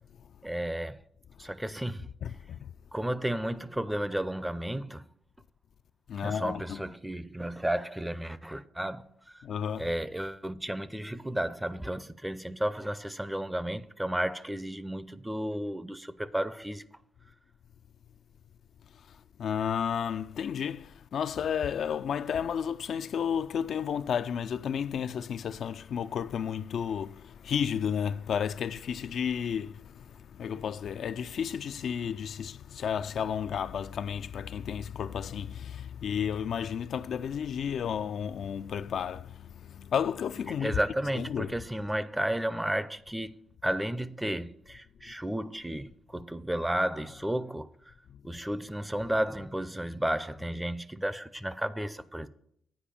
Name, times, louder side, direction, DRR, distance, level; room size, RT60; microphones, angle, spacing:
voice 1, 0.4-1.0 1.4-2.1 2.9-5.0 6.2-9.0 9.8-16.9 40.6-47.7 48.2-52.3, right 1 dB, 5° right, 0.4 m, -33 dB
voice 2, 2.2-2.7 6.1-6.9 9.4-9.9 19.0-19.1 19.4-40.8 41.1-41.6, left 8 dB, 60° left, 0.3 m, -32 dB
8.6 x 4.9 x 7.4 m
cardioid pair, 90°, 0 cm